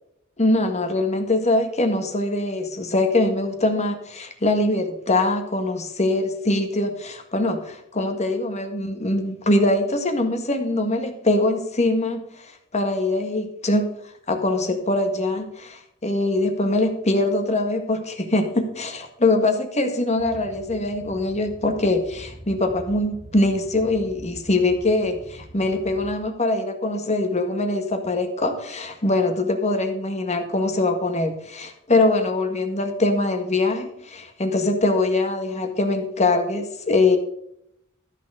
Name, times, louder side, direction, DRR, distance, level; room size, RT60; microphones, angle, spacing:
voice 1, 0.4-12.3 12.7-13.9 14.3-37.2, left 2 dB, 35° left, 5 dB, 1.7 m, -23 dB
sound 1, 20.2-26.1, right 1 dB, 35° right, 2.1 m, -44 dB
13.5 x 6.6 x 4.9 m, 0.76 s
head